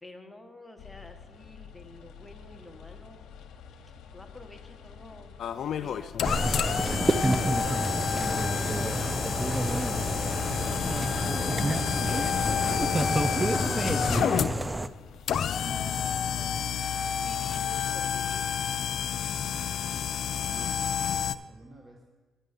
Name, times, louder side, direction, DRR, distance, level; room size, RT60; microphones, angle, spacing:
voice 1, 0.0-3.2 4.1-5.4 5.8-8.5 9.9-10.3 10.8-11.7 12.0-14.3 15.5-16.6 17.2-18.6, left 2 dB, 10° left, 5 dB, 1.1 m, -49 dB
sound 1, 0.8-16.2, left 6 dB, 80° left, 0.9 m, -50 dB
sound 2, 5.4-21.3, left 8 dB, 65° left, 0.3 m, -30 dB
sound 3, 6.2-14.9, right 1 dB, 15° right, 0.4 m, -29 dB
voice 2, 20.3-22.0, right 1 dB, 30° right, 1 dB, 1.1 m, -51 dB
9.7 x 5.4 x 8.0 m, 1.3 s
cardioid pair, 90°, 0 cm